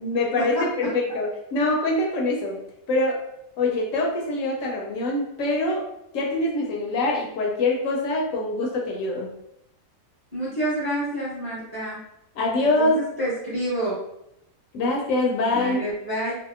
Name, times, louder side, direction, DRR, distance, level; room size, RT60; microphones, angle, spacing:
voice 1, 0.0-2.6 2.9-3.2 3.6-5.9 6.1-9.3 12.4-13.0 14.7-15.9, left 2 dB, 75° left, 0 dB, 0.9 m, -24 dB
voice 2, 10.3-12.0 12.6-14.0 15.5-16.3, right 1 dB, 20° right, -8 dB, 0.8 m, -28 dB
2.7 x 2.0 x 2.3 m, 0.80 s
omnidirectional pair, 1.4 m